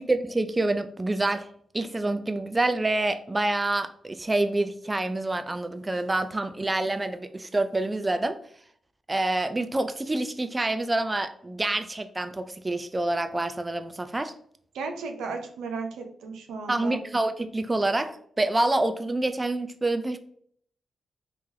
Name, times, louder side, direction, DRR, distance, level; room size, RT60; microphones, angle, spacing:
voice 1, 0.1-1.5 1.7-8.4 9.1-14.3 16.7-20.2, right 2 dB, 25° right, 9 dB, 0.3 m, -27 dB
voice 2, 14.7-17.0, right 4 dB, 90° right, 4 dB, 0.6 m, -35 dB
3.6 x 3.0 x 2.7 m, 0.64 s
supercardioid pair, 55°, 0 cm